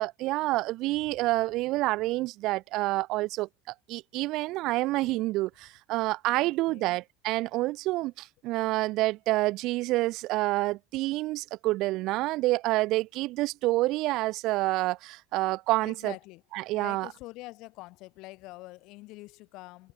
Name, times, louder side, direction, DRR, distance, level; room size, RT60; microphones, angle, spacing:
voice 1, 0.0-16.1 16.5-17.1, right 19 dB, 45° right, 0.7 m, -28 dB
voice 2, 6.3-7.0 15.8-16.4 16.7-19.9, left 21 dB, 45° left, 7.3 m, -46 dB
cardioid pair, 165°, 0 cm